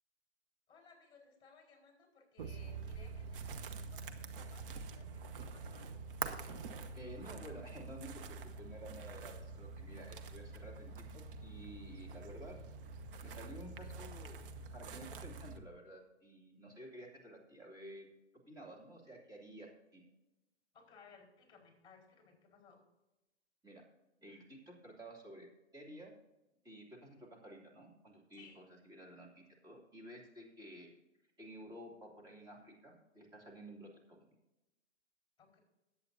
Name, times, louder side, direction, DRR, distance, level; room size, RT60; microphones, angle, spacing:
voice 1, 0.7-5.9 20.7-22.8 28.4-28.6 35.4-35.6, left 5 dB, 15° left, 0 dB, 4.4 m, -62 dB
sound 1, 2.4-15.6, right 4 dB, 50° right, 1.1 m, -46 dB
voice 2, 6.9-12.6 13.2-18.1 18.5-20.0 23.6-23.8 24.2-26.1 26.6-30.9 31.4-34.3, right 1 dB, 10° right, -3 dB, 2.7 m, -52 dB
19.0 x 8.5 x 2.7 m, 0.98 s
figure-of-eight pair, 120°, 35 cm